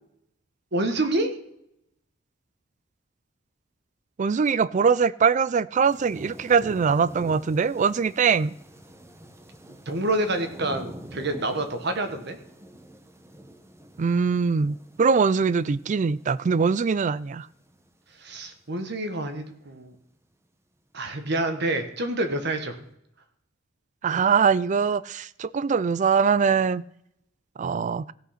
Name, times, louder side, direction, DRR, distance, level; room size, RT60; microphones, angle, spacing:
voice 1, 0.7-1.3 9.7-12.4 18.2-19.9 20.9-22.8, right 2 dB, 60° right, 1.4 m, -28 dB
voice 2, 4.2-8.5 14.0-17.5 24.0-26.8 27.6-28.1, right 5 dB, 40° right, 0.4 m, -22 dB
sound 1, 5.8-18.8 19.1-19.2, right 1 dB, 15° right, 0.9 m, -46 dB
16.0 x 5.5 x 5.8 m
head